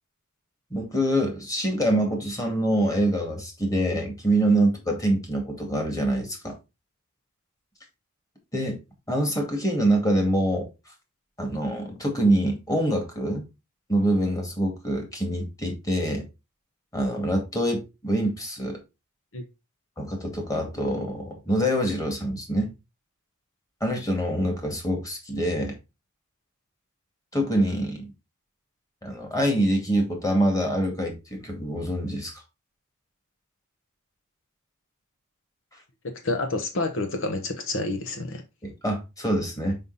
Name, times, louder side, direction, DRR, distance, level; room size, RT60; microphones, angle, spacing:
voice 1, 0.7-6.5 8.5-8.8 9.1-10.7 11.4-13.4 13.9-16.2 16.9-18.8 20.0-22.7 23.8-25.7 27.3-28.1 29.0-32.3 38.6-39.8, right 1 dB, 15° left, 2.2 m, -25 dB
voice 2, 36.0-38.4, left 2 dB, 60° left, 1.1 m, -29 dB
5.7 x 5.3 x 4.1 m
head